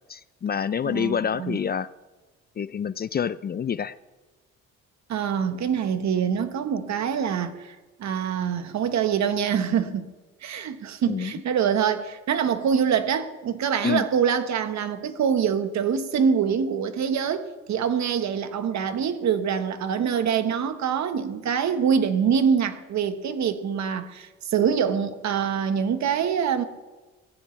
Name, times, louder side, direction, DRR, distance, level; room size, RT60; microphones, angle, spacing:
voice 1, 0.1-1.9 2.6-3.9 11.1-11.3 13.8-14.1, left 7 dB, 35° left, 0.4 m, -27 dB
voice 2, 0.8-1.6 5.1-10.1 10.4-26.6, right 7 dB, 65° right, 1.3 m, -25 dB
18.0 x 15.5 x 3.3 m
cardioid pair, 90°, 30 cm